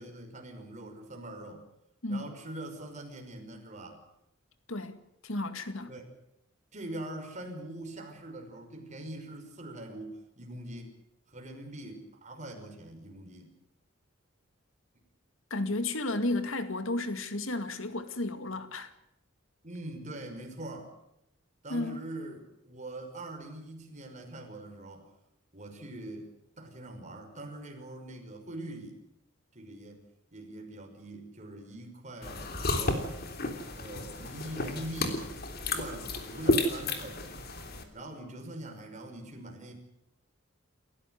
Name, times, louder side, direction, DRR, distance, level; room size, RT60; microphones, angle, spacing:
voice 1, 0.0-1.7 2.1-4.0 5.9-6.1 6.7-10.9 11.3-13.5 19.6-20.9 21.6-25.1 25.5-29.0 29.5-30.0 30.3-32.5 32.8-33.1 33.8-35.3 35.7-37.4 37.9-39.7, right 1 dB, 35° right, 5.6 m, -43 dB
voice 2, 2.0-2.3 4.7-5.9 15.5-18.9 21.7-22.0, left 2 dB, 70° left, 2.2 m, -33 dB
sound 1, 32.2-37.8, left 2 dB, 50° left, 3.4 m, -32 dB
29.0 x 15.5 x 7.9 m
head